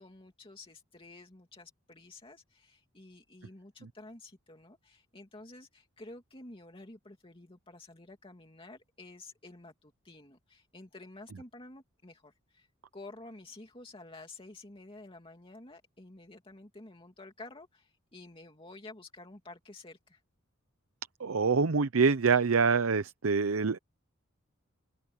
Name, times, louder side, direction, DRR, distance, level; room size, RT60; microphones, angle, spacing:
voice 1, 0.0-12.7 12.9-20.2, left 2 dB, 25° left, 2.5 m, -51 dB
voice 2, 21.2-23.8, right 5 dB, 75° right, 0.7 m, -25 dB
open air
head